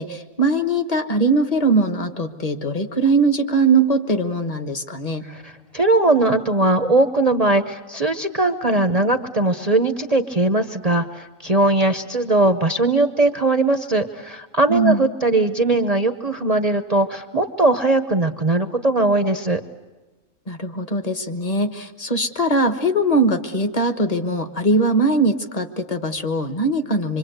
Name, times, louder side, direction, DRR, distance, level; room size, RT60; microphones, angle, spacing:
voice 1, 0.0-5.3 14.7-15.0 20.5-27.2, right 2 dB, 30° left, 8 dB, 1.4 m, -21 dB
voice 2, 5.7-19.6, right 2 dB, 30° right, 8 dB, 0.9 m, -19 dB
26.0 x 25.0 x 8.0 m, 1.2 s
omnidirectional pair, 1.5 m